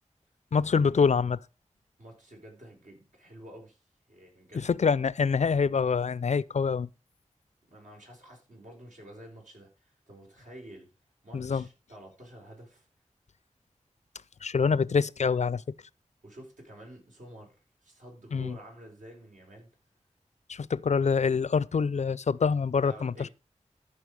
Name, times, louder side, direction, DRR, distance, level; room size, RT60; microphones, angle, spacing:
voice 1, 0.5-1.4 4.5-6.9 11.3-11.6 14.4-15.6 18.3-18.6 20.5-23.3, left 5 dB, 65° left, 0.4 m, -25 dB
voice 2, 2.0-3.8 4.1-4.7 7.7-10.9 11.2-12.9 16.2-17.6 17.8-19.7 22.8-23.3, right 1 dB, 80° right, 4.8 m, -49 dB
13.0 x 5.8 x 4.9 m
wide cardioid pair, 85°, 13 cm